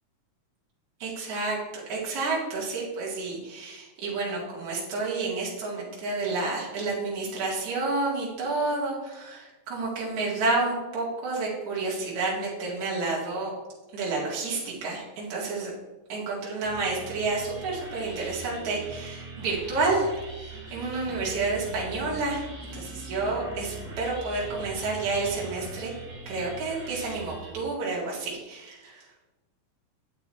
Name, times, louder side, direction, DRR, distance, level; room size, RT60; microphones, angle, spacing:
voice 1, 1.0-1.6 1.9-13.5 13.9-15.7 16.1-22.4 22.7-25.9 26.3-29.0, right 3 dB, 65° right, -5 dB, 3.4 m, -30 dB
sound 1, 16.6-27.5, right 2 dB, 40° right, 3.9 m, -41 dB
10.0 x 8.0 x 4.3 m, 1.1 s
omnidirectional pair, 3.7 m